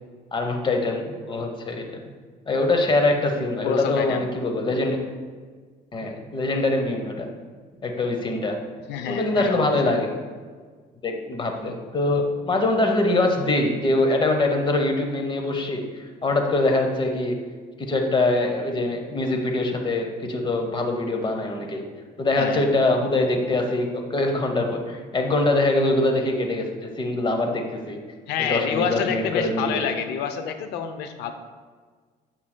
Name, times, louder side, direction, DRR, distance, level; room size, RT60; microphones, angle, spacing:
voice 1, 0.3-2.0 2.5-5.0 5.9-7.3 7.8-8.6 9.0-10.1 11.0-17.4 17.8-21.8 22.2-28.0 28.4-29.8, left 2 dB, 30° left, 4 dB, 0.9 m, -23 dB
voice 2, 3.6-4.2 8.9-9.9 22.4-22.7 28.3-31.3, left 7 dB, 85° left, 8 dB, 0.5 m, -28 dB
8.5 x 5.6 x 2.2 m, 1.5 s
cardioid pair, 110°, 17 cm